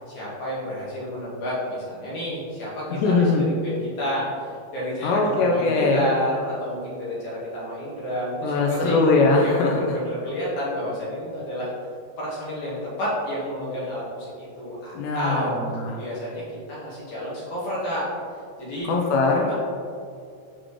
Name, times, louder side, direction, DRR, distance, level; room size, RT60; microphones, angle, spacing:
voice 1, 0.0-9.0 9.4-11.7 12.2-15.5 16.0-18.1 18.6-18.9 19.5-19.6, equal, 55° left, -8 dB, 2.2 m, -30 dB
voice 2, 2.9-3.4 5.0-6.1 8.4-10.0 15.0-15.9 18.8-19.5, left 3 dB, 85° left, 0 dB, 2.6 m, -21 dB
7.7 x 6.1 x 3.1 m, 2.4 s
omnidirectional pair, 5.4 m